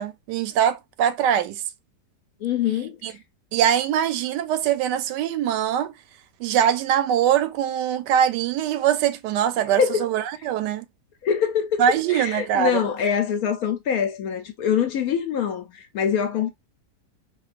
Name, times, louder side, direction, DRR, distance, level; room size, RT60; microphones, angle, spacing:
voice 1, 0.0-1.6 3.0-3.1 3.5-5.9 6.4-10.8 11.8-12.8, right 9 dB, 80° right, 1.2 m, -22 dB
voice 2, 2.4-3.2 9.6-10.1 11.2-11.8 12.1-16.5, left 8 dB, 70° left, 1.0 m, -24 dB
4.4 x 2.4 x 2.4 m
omnidirectional pair, 1.8 m